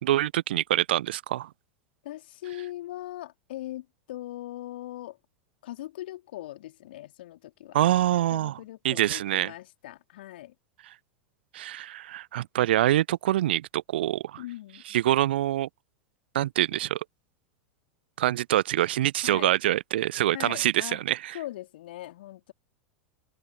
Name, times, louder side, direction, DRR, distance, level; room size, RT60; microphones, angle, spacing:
voice 1, 0.0-1.5 7.7-8.6 8.8-9.5 11.5-14.4 14.9-15.7 16.3-17.0 18.2-21.4, right 13 dB, 60° right, 0.4 m, -25 dB
voice 2, 2.0-5.2 5.6-7.8 8.3-10.5 14.4-15.0 19.2-19.5 20.3-21.0 21.3-22.5, left 15 dB, 60° left, 2.9 m, -40 dB
open air
figure-of-eight pair, 85°, 6 cm